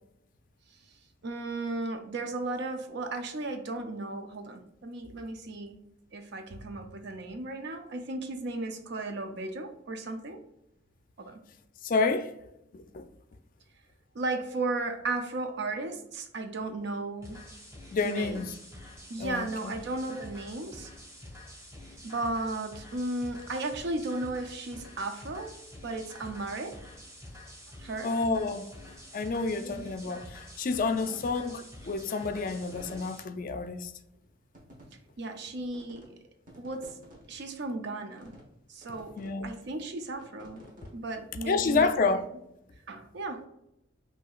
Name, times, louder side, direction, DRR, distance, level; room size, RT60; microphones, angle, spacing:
voice 1, 1.2-5.8 6.1-10.4 11.2-11.4 14.1-17.4 18.0-18.4 19.1-20.9 22.0-25.6 25.8-26.8 27.8-28.1 29.6-29.8 30.9-31.2 35.2-36.1 36.6-37.0 37.3-38.3 38.7-40.6 40.9-41.9 42.9-43.5, right 2 dB, 65° right, 0.5 m, -35 dB
voice 2, 11.8-12.3 12.7-13.1 17.9-18.5 19.2-19.7 28.0-28.7 29.1-33.9 39.2-39.5 41.5-42.2, left 4 dB, 45° left, 0.4 m, -29 dB
sound 1, 17.2-33.2, left 1 dB, 15° right, 1.4 m, -48 dB
sound 2, 31.0-33.1 33.6-33.7 34.1-34.3 34.5-35.5 35.7-36.1 36.3-37.6 38.2-38.6 38.8-39.3 39.7-41.8, equal, 45° right, 1.1 m, -52 dB
5.8 x 2.7 x 2.4 m
head